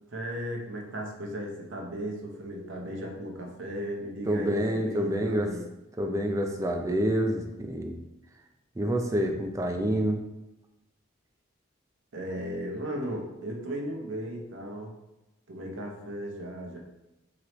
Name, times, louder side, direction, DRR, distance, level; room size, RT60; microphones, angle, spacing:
voice 1, 0.1-5.6 12.1-14.9 15.5-16.8, equal, 75° right, 0 dB, 0.8 m, -36 dB
voice 2, 4.3-5.5 6.0-8.0 8.8-10.2, equal, 15° right, 3 dB, 0.4 m, -27 dB
4.8 x 3.0 x 3.0 m, 0.96 s
head